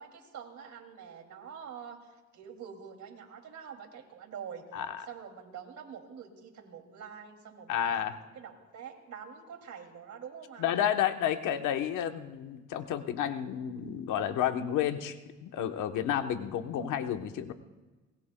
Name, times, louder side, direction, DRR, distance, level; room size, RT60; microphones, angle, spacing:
voice 1, 0.0-4.7 5.1-10.7, right 7 dB, 65° right, 3 dB, 2.6 m, -46 dB
voice 2, 7.7-8.1 10.6-17.5, left 10 dB, 85° left, 7 dB, 1.0 m, -31 dB
23.5 x 20.0 x 2.2 m, 1.2 s
cardioid pair, 90°, 30 cm